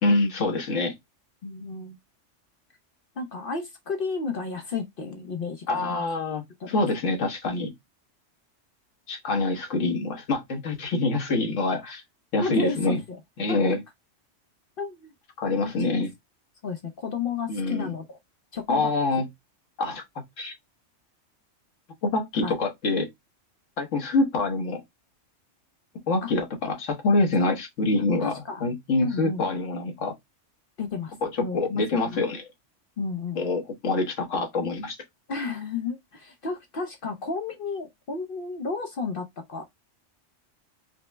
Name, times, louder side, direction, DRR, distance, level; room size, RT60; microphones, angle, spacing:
voice 1, 0.0-0.9 5.7-7.7 9.1-12.0 12.3-13.0 13.4-13.8 15.4-16.1 17.5-17.9 18.7-19.2 19.8-20.0 20.4-20.5 22.0-23.1 23.8-24.8 26.1-28.3 28.6-30.1 31.2-32.4 33.4-35.0, left 2 dB, 80° left, 1.5 m, -25 dB
voice 2, 1.4-2.0 3.2-6.0 6.6-6.8 12.4-13.2 13.5-13.8 14.8-15.1 15.8-16.0 16.6-18.2 18.5-18.9 19.9-20.0 22.4-22.5 26.2-26.3 27.9-28.6 29.0-29.5 30.8-31.2 31.4-32.2 33.0-33.5 35.3-39.6, left 4 dB, 55° left, 0.7 m, -32 dB
5.2 x 2.1 x 3.2 m
omnidirectional pair, 1.3 m